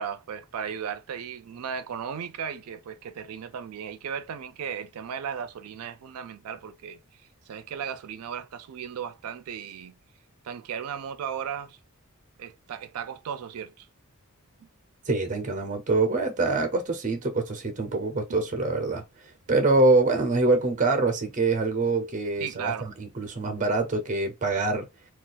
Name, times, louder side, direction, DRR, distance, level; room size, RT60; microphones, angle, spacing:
voice 1, 0.0-10.0 10.4-11.8 12.4-13.9 14.6-14.7 20.8-20.9 22.4-22.9, right 7 dB, 80° right, 0.4 m, -36 dB
voice 2, 15.1-19.0 19.5-22.7 23.0-24.9, right 3 dB, 35° right, 0.6 m, -24 dB
2.3 x 2.3 x 4.0 m
head